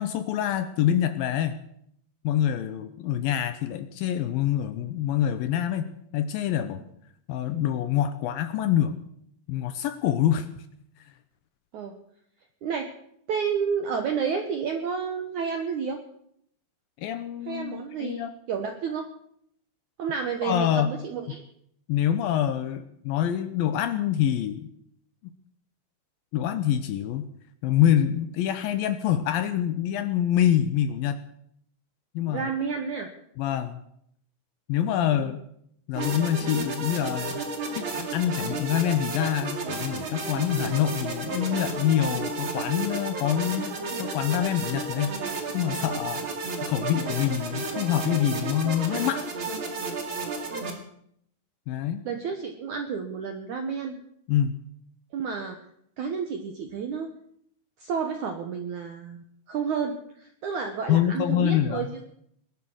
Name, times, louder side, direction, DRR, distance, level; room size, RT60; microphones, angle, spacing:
voice 1, 0.0-1.6 2.2-6.8 7.3-9.0 9.5-10.5 17.0-18.3 20.4-20.9 21.9-24.7 25.2-25.3 26.3-27.3 27.6-31.2 32.1-32.5 33.4-33.8 34.7-35.4 35.9-37.4 37.8-43.7 44.0-46.3 46.6-49.3 51.7-52.1 54.3-54.6 60.9-61.9, left 10 dB, 80° left, 10 dB, 2.1 m, -26 dB
voice 2, 13.3-16.0 17.5-19.1 20.0-21.4 32.3-33.1 35.1-35.3 50.5-50.8 52.0-54.0 55.1-55.6 56.0-57.1 57.8-62.1, right 6 dB, 75° right, 5 dB, 1.8 m, -31 dB
sound 1, 35.9-50.7, right 3 dB, 40° right, 2.1 m, -32 dB
20.0 x 11.0 x 6.2 m, 0.70 s
omnidirectional pair, 5.1 m